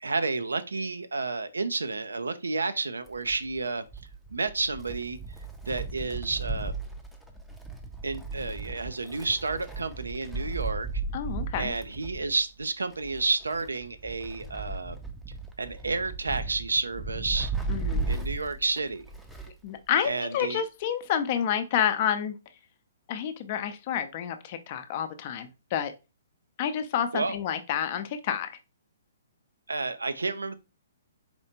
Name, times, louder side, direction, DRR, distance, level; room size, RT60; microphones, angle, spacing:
voice 1, 0.0-3.8 4.3-5.2 5.7-6.7 8.0-10.9 11.6-15.0 15.6-17.5 18.1-19.1 20.1-20.6 27.1-27.4 29.7-30.6, right 3 dB, 75° right, 0.5 m, -30 dB
Wind, 3.1-19.7 20.0-20.1 21.0-21.1, right 3 dB, ahead, 0.6 m, -36 dB
voice 2, 11.1-11.7 17.7-18.1 19.6-22.3 23.1-25.9 26.6-28.5, left 9 dB, 40° left, 0.6 m, -29 dB
4.3 x 3.2 x 2.8 m
figure-of-eight pair, 125°, 0 cm